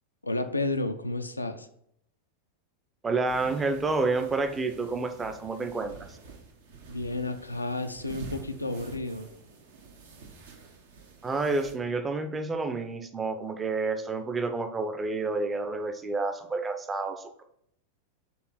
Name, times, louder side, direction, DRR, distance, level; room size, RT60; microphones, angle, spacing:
voice 1, 0.2-1.7 6.9-9.3, left 2 dB, 85° left, 7 dB, 0.6 m, -31 dB
voice 2, 3.0-6.0 11.2-17.4, right 3 dB, 15° right, 8 dB, 0.8 m, -29 dB
sound 1, 3.2-11.8, right 4 dB, 60° right, 1.3 m, -48 dB
7.2 x 3.4 x 6.0 m, 0.71 s
figure-of-eight pair, 90°, 0 cm